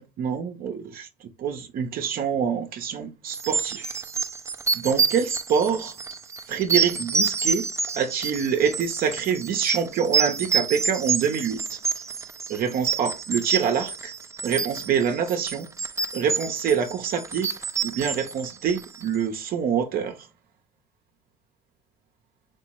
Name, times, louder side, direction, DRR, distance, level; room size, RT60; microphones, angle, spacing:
voice 1, 0.0-3.9 4.7-5.9 6.5-7.7 7.9-11.8 12.5-14.1 14.4-15.7 16.1-17.5 17.8-20.2, right 7 dB, 60° right, 0.6 m, -26 dB
sound 1, 3.3-19.2, right 5 dB, 15° right, 0.4 m, -28 dB
4.5 x 2.0 x 4.5 m
cardioid pair, 110°, 17 cm